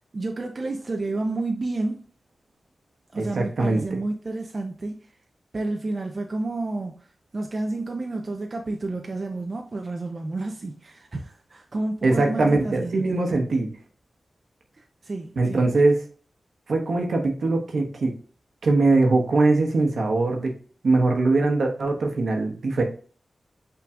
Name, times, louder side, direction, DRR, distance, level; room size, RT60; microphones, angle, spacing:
voice 1, 0.1-2.0 3.1-5.0 5.5-7.1 7.3-13.0 15.0-15.7, right 2 dB, 50° right, 0.6 m, -30 dB
voice 2, 3.2-3.8 12.0-13.7 15.4-16.0 16.7-18.1 18.6-20.5 20.8-22.8, right 3 dB, 80° right, 1.1 m, -21 dB
5.7 x 3.8 x 2.4 m
cardioid pair, 50°, 0 cm